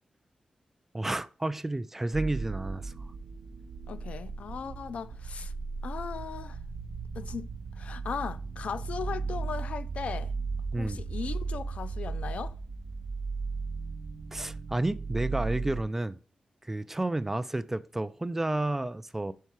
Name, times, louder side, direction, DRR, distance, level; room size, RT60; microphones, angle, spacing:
voice 1, 0.9-2.9 10.7-11.0 14.3-16.2 16.6-19.3, right 2 dB, 15° right, 0.3 m, -31 dB
sound 1, 2.1-15.8, right 4 dB, 55° right, 0.7 m, -36 dB
voice 2, 3.9-5.5 5.8-6.6 7.1-10.3 10.8-12.5, left 6 dB, 70° left, 0.4 m, -38 dB
5.7 x 5.5 x 4.6 m
wide cardioid pair, 155°, 2 cm